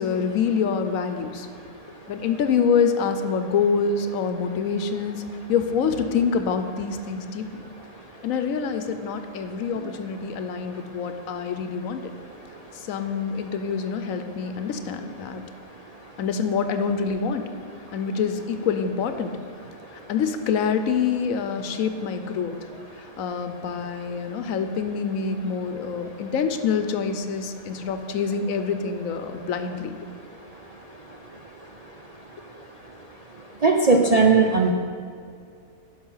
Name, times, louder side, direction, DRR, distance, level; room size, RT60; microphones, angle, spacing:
voice 1, 0.0-1.5 2.1-5.2 5.5-7.6 8.2-12.1 12.7-15.4 16.2-17.5 17.9-19.4 20.1-22.6 23.0-30.0, left 6 dB, 80° left, 8 dB, 1.1 m, -26 dB
voice 2, 33.6-34.7, right 4 dB, 50° right, 1 dB, 0.4 m, -17 dB
10.5 x 5.7 x 5.6 m, 2.3 s
omnidirectional pair, 1.4 m